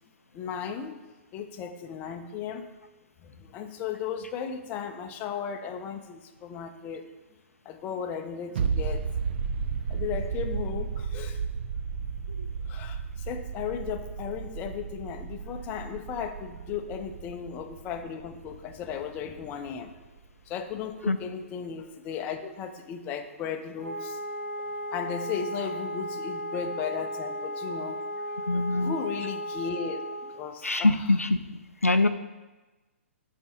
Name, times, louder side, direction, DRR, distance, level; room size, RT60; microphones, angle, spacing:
voice 1, 0.3-1.0 1.3-2.7 3.2-7.1 7.7-9.1 9.9-11.4 12.7-19.9 20.5-24.2 24.9-28.0 28.7-31.0, left 7 dB, 20° left, 6 dB, 0.5 m, -35 dB
sound 1, 8.6-19.9 20.2-20.3, right 6 dB, 45° right, 0.5 m, -33 dB
Wind instrument woodwind instrument, 23.8-30.4, equal, 80° right, 2.2 m, -35 dB
voice 2, 28.5-28.9 30.6-31.4 31.8-32.1, left 2 dB, 90° left, 10 dB, 0.4 m, -23 dB
10.5 x 4.2 x 2.9 m, 1.2 s
figure-of-eight pair, 120°, 8 cm